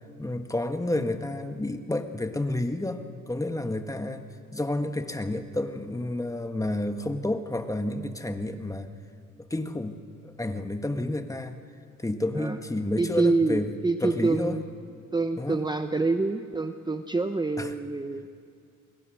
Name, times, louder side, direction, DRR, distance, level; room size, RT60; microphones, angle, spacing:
voice 1, 0.2-4.2 4.5-8.9 9.4-11.6 12.0-13.7 14.0-14.6 15.4-15.6 17.6-17.7, left 1 dB, 10° left, 7 dB, 1.5 m, -30 dB
voice 2, 13.0-14.6 15.1-18.3, right 3 dB, 15° right, 8 dB, 0.8 m, -26 dB
29.0 x 21.5 x 6.3 m, 2.3 s
cardioid pair, 90°, 30 cm